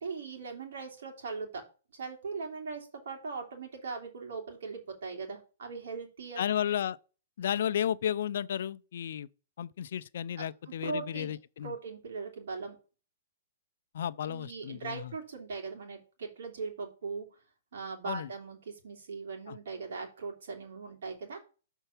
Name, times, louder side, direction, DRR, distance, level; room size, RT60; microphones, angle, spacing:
voice 1, 0.0-1.6 1.9-6.5 10.7-11.4 11.6-12.8 14.2-17.3 17.7-21.4, right 4 dB, 75° right, 3.0 m, -40 dB
voice 2, 6.4-7.0 7.4-9.3 9.6-11.8 13.9-15.1 18.0-18.3 19.5-19.6, left 9 dB, 65° left, 0.5 m, -33 dB
6.7 x 4.5 x 5.9 m
hypercardioid pair, 145°, 0 cm